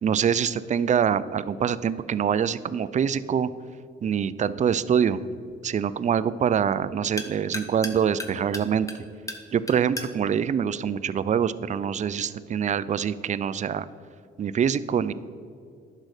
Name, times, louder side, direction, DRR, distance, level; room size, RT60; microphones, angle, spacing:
voice 1, 0.0-3.5 4.0-5.2 5.6-8.9 9.5-13.9 14.4-15.1, right 8 dB, 35° right, 15 dB, 0.4 m, -25 dB
sound 1, 4.1-11.7, left 1 dB, 15° left, 1.0 m, -41 dB
10.5 x 6.5 x 4.9 m, 2.4 s
cardioid pair, 90°, 20 cm